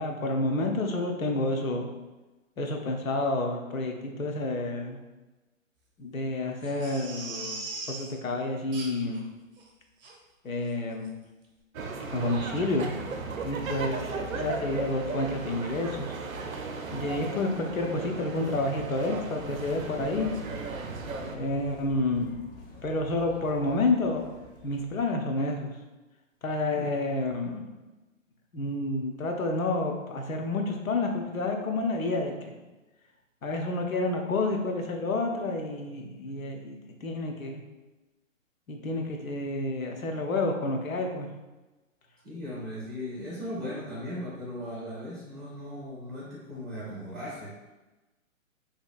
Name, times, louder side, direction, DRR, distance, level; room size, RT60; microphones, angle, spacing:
voice 1, 0.0-1.9 2.6-5.0 6.0-9.2 10.4-11.1 12.1-12.9 13.4-14.0 14.3-16.1 16.9-20.3 21.3-22.4 22.8-24.2 24.6-25.7 26.4-27.7 28.5-32.5 33.4-37.6 38.7-41.3, left 2 dB, 85° left, 2 dB, 0.6 m, -29 dB
Crying sobbing, 6.6-8.1 8.7-9.2 9.6-9.7 10.0-10.1 10.6-10.8 11.0-11.1, right 3 dB, 45° right, 0.7 m, -39 dB
sound 1, 11.7-21.4, right 4 dB, 80° right, 0.5 m, -36 dB
sound 2, 19.4-25.1, left 2 dB, 45° left, 0.6 m, -48 dB
voice 2, 42.2-47.7, left 1 dB, 5° right, -14 dB, 0.5 m, -38 dB
2.7 x 2.5 x 2.3 m, 1.1 s
figure-of-eight pair, 130°, 40 cm